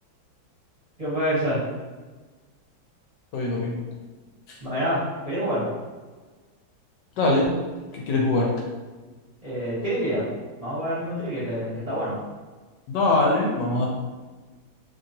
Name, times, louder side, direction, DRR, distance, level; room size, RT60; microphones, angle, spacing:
voice 1, 1.0-1.6 4.6-5.7 8.3-8.4 9.4-10.3 10.6-12.2, equal, 25° right, -11 dB, 0.8 m, -27 dB
voice 2, 3.3-3.8 7.2-7.5 7.9-8.5 12.9-13.9, left 2 dB, 70° left, -1 dB, 1.1 m, -22 dB
3.0 x 2.7 x 2.7 m, 1.3 s
omnidirectional pair, 2.2 m